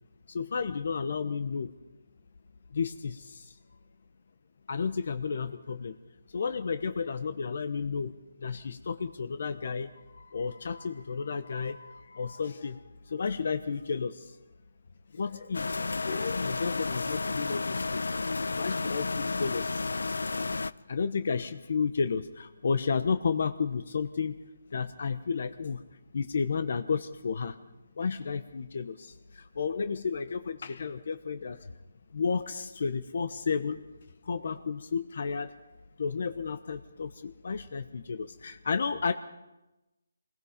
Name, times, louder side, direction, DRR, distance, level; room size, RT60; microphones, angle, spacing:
voice 1, 0.3-1.7 2.7-3.2 4.7-5.9 6.3-8.1 8.4-9.9 10.3-12.8 13.1-14.3 15.1-19.8 20.9-24.4 24.7-25.8 26.1-27.5 28.0-31.6 32.1-33.8 34.3-35.5 36.0-39.1, left 5 dB, 50° left, 10 dB, 1.0 m, -32 dB
sound 1, 15.5-20.7, left 3 dB, 85° left, 0.7 m, -32 dB
26.5 x 20.5 x 5.2 m, 1.0 s
hypercardioid pair, 170°, 0 cm